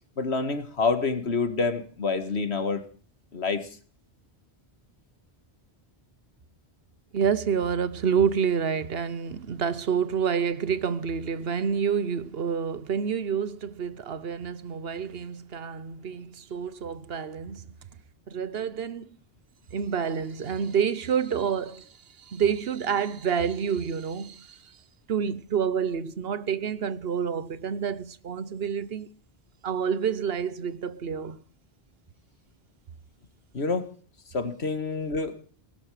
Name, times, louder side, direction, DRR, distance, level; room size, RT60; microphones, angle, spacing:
voice 1, 0.2-2.8 3.3-3.7 33.5-33.9 34.3-35.3, left 4 dB, 90° left, 2.0 m, -27 dB
voice 2, 7.1-17.6 18.3-19.2 19.7-21.9 22.2-24.7 25.1-29.1 29.6-31.4, right 7 dB, 65° right, 1.1 m, -28 dB
17.5 x 13.5 x 4.9 m
omnidirectional pair, 1.1 m